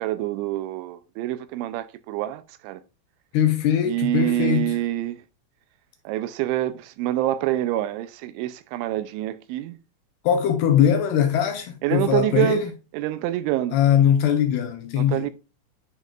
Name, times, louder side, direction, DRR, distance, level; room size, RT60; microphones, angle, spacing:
voice 1, 0.0-2.8 3.8-5.2 6.1-9.8 11.8-13.8 15.0-15.3, right 14 dB, 85° right, 3.0 m, -26 dB
voice 2, 3.3-4.8 10.2-12.7 13.7-15.3, left 9 dB, 75° left, 2.5 m, -21 dB
10.5 x 5.3 x 2.4 m
omnidirectional pair, 5.4 m